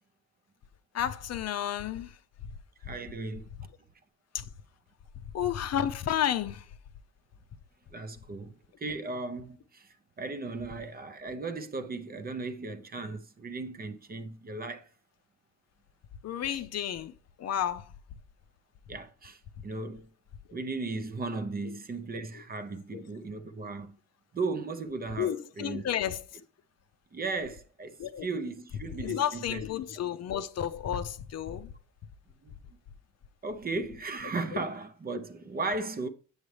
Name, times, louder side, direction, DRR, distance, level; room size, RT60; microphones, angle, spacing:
voice 1, 0.9-2.1 4.3-4.4 5.3-6.6 16.2-17.1 17.4-17.9 22.9-23.0 25.2-26.4 28.0-28.3 29.0-31.7, left 10 dB, 50° left, 0.6 m, -31 dB
voice 2, 2.8-3.5 7.9-14.9 16.5-16.6 18.9-20.1 20.5-24.0 24.3-25.8 27.1-29.6 32.4-32.5 33.4-36.1, right 3 dB, 25° right, 0.6 m, -36 dB
8.0 x 6.8 x 3.2 m
cardioid pair, 120°, 34 cm